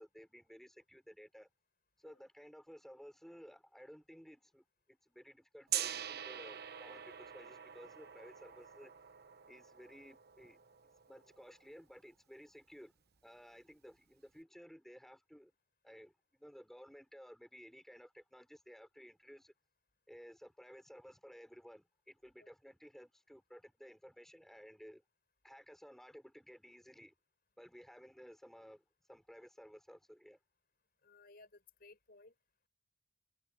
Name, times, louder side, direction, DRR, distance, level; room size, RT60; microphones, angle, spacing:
voice 1, 0.0-1.5 2.0-8.9 9.5-12.9 13.2-15.5 15.8-19.5 20.1-25.0 25.4-27.1 27.6-30.4, equal, ahead, 5.9 m, -56 dB
Gong, 5.7-11.6, right 10 dB, 50° right, 1.1 m, -44 dB
voice 2, 31.0-32.3, left 3 dB, 45° left, 4.9 m, -60 dB
head